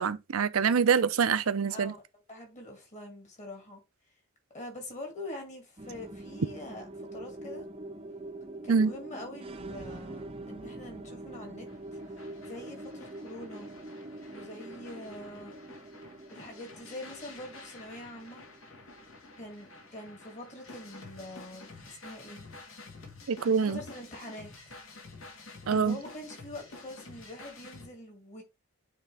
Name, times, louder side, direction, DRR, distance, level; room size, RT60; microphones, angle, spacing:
voice 1, 0.0-1.9 8.7-8.9 23.3-23.8 25.7-26.0, right 6 dB, 80° right, 0.5 m, -25 dB
voice 2, 1.7-2.0 2.3-3.8 4.5-7.7 8.6-11.7 12.4-13.7 14.3-15.6 16.3-18.4 19.4-22.5 23.7-24.7 25.7-28.4, left 1 dB, 35° left, 2.3 m, -44 dB
sound 1, 5.8-20.4, right 1 dB, 25° right, 0.6 m, -45 dB
sound 2, 11.7-27.9, left 3 dB, 70° left, 1.8 m, -50 dB
9.0 x 3.6 x 3.4 m
head